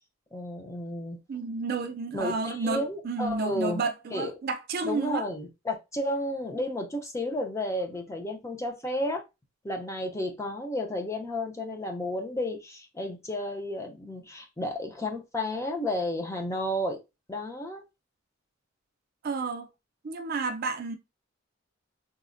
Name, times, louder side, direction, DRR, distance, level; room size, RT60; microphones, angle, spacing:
voice 1, 0.3-1.2 2.1-3.8 4.1-4.3 4.8-9.2 9.6-17.0 17.3-17.8, left 1 dB, 15° left, 0.5 m, -32 dB
voice 2, 1.3-5.2 19.2-19.7 20.0-21.0, right 4 dB, 45° right, 0.4 m, -31 dB
4.0 x 2.1 x 2.5 m
head